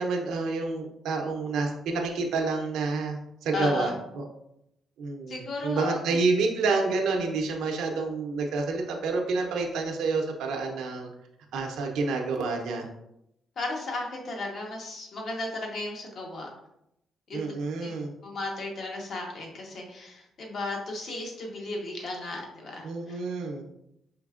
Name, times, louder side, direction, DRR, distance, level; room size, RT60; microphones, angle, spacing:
voice 1, 0.0-4.2 5.0-11.1 11.5-12.9 17.3-18.1 22.8-23.6, right 3 dB, 80° right, 1 dB, 0.6 m, -28 dB
voice 2, 3.5-4.0 5.3-6.0 13.6-16.5 17.3-17.5 17.8-17.9 18.2-23.2, left 2 dB, 55° left, 0 dB, 1.1 m, -35 dB
5.1 x 3.3 x 2.4 m, 0.81 s
cardioid pair, 90°, 0 cm